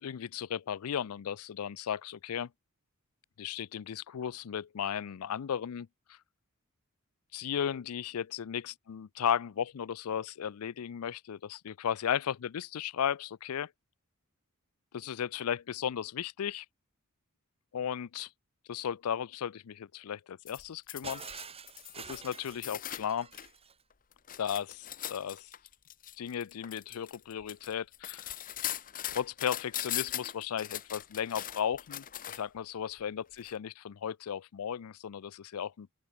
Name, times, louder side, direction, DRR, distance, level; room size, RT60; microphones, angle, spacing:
voice 1, 0.0-2.5 3.4-6.2 7.3-13.7 14.9-16.7 17.7-18.3 18.7-21.4 22.0-23.3 24.4-25.5 26.2-28.2 29.1-35.9, left 8 dB, 85° left, 0.4 m, -35 dB
sound 1, 20.5-23.5 23.9-32.6 33.4-33.5, left 12 dB, 40° left, 0.9 m, -40 dB
Shatter, 21.0-23.8, right 6 dB, 25° right, 4.0 m, -47 dB
open air
head